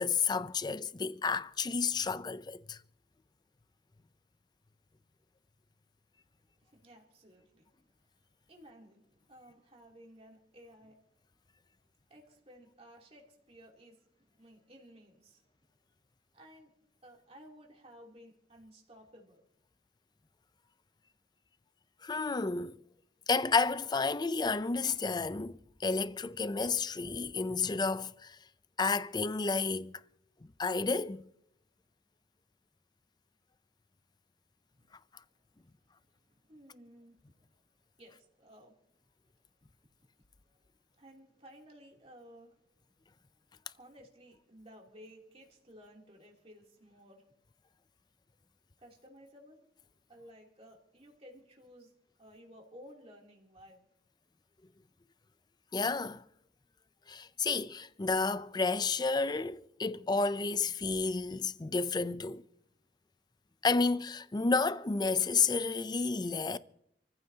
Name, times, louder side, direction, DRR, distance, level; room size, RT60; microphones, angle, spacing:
voice 1, 0.0-2.8 22.0-22.8 23.3-28.4 28.8-29.9 30.6-31.2 55.7-56.2 57.1-62.4 63.6-66.6, left 4 dB, 25° left, 0.5 m, -31 dB
voice 2, 6.6-7.7 8.1-8.2 8.5-11.0 12.1-15.5 16.3-16.7 17.0-19.4 34.7-34.9 35.3-37.5 37.9-38.8 40.4-40.7 40.9-42.8 43.4-47.3 48.8-49.6 50.1-51.9 52.2-53.8 57.3-57.5, equal, 35° right, 3.0 m, -56 dB
28.0 x 15.0 x 2.8 m
head